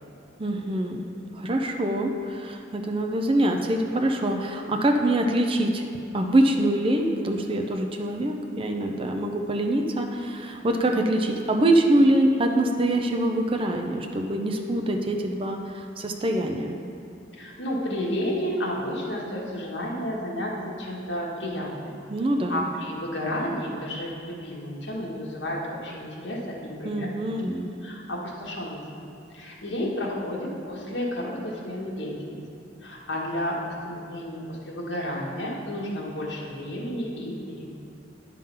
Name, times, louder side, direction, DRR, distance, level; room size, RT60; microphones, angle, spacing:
voice 1, 0.4-1.1 1.3-5.9 6.1-16.8 22.1-22.7 26.8-27.7, right 1 dB, 30° right, 3 dB, 0.5 m, -24 dB
voice 2, 17.3-22.0 22.5-27.1 27.5-32.4 32.8-37.7, equal, 75° left, -4 dB, 1.6 m, -32 dB
10.0 x 3.7 x 5.6 m, 2.6 s
head